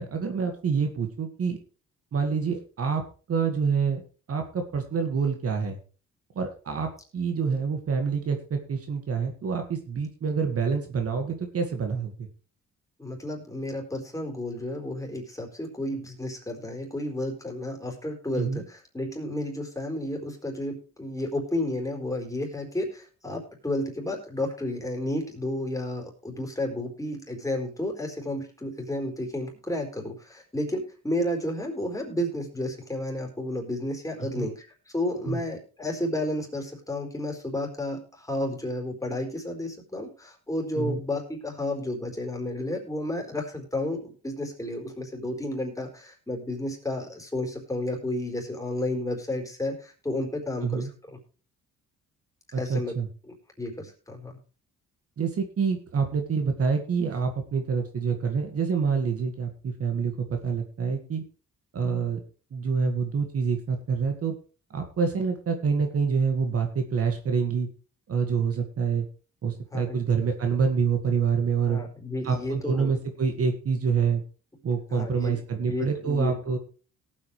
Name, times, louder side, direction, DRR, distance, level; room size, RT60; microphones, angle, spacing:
voice 1, 0.0-1.6 2.1-3.0 3.3-4.0 4.3-5.8 6.4-12.3 18.4-18.6 34.4-34.5 35.3-35.4 40.8-41.0 50.6-50.9 52.5-53.1 55.2-61.2 61.7-62.2 62.5-64.3 64.7-67.7 68.1-69.1 69.4-71.8 72.2-74.2 74.6-76.6, right 5 dB, 50° right, 5 dB, 1.9 m, -27 dB
voice 2, 13.0-34.7 34.9-51.2 52.6-52.9 53.3-54.4 69.7-70.0 71.7-72.9 74.9-76.3, left 1 dB, 10° left, 1 dB, 4.4 m, -32 dB
18.0 x 8.4 x 3.3 m, 0.37 s
cardioid pair, 90°, 30 cm